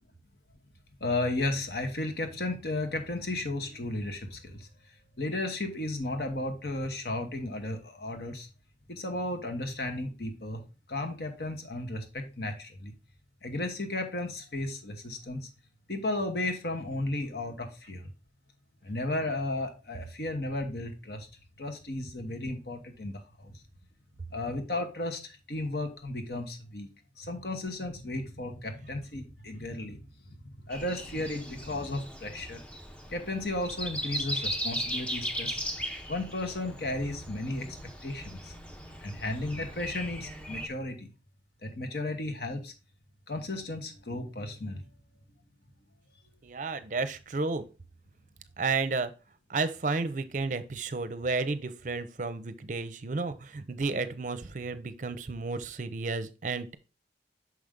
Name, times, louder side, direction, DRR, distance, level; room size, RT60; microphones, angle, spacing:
voice 1, 1.0-4.7 5.2-8.5 8.9-10.6 10.9-12.9 13.4-15.5 15.9-18.1 18.8-21.3 21.6-23.6 24.3-26.9 27.2-32.6 33.1-35.6 36.1-37.7 38.0-38.5 39.0-41.1 41.6-42.7 43.3-44.9, left 2 dB, 65° left, 5 dB, 1.1 m, -34 dB
Breathing, 30.7-40.7, equal, 5° left, 0.6 m, -38 dB
voice 2, 46.4-47.6 48.6-49.1 49.5-56.8, right 3 dB, 45° right, 12 dB, 0.6 m, -32 dB
6.2 x 5.1 x 3.6 m, 0.31 s
head